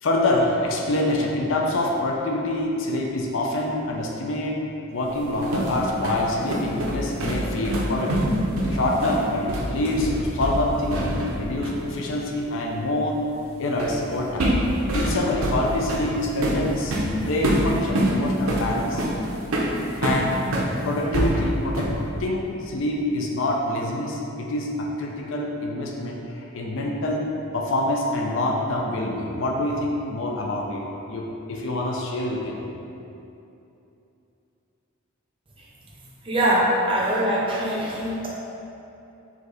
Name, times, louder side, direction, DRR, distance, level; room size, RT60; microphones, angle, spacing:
voice 1, 0.0-4.6 4.9-8.1 8.7-13.2 13.6-14.5 14.9-19.0 20.0-20.3 20.8-21.9 22.2-27.3 27.5-30.8 31.1-32.6, left 1 dB, 65° left, 0 dB, 0.5 m, -26 dB
sound 1, 5.2-11.4 11.6-11.9 13.8-14.0 14.4-20.7 21.1-22.1, right 1 dB, 85° right, 0.7 m, -25 dB
voice 2, 36.2-38.3, right 1 dB, 25° right, -4 dB, 0.6 m, -22 dB
5.0 x 2.7 x 3.9 m, 2.8 s
head